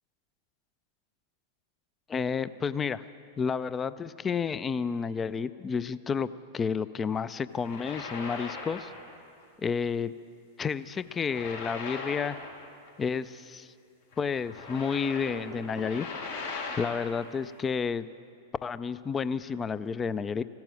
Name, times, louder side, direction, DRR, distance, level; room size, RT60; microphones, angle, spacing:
voice 1, 2.1-3.0 3.4-6.3 6.5-8.9 9.6-10.1 10.6-12.4 13.0-13.7 14.2-16.1 16.8-18.1 18.6-20.4, left 6 dB, 20° left, 16 dB, 0.4 m, -30 dB
sound 1, 7.5-9.1 9.4-9.7 11.0-12.9 13.1-13.2 14.1-17.2, left 3 dB, 70° left, 3.9 m, -39 dB
15.5 x 12.0 x 7.7 m, 2.4 s
figure-of-eight pair, 100°, 0 cm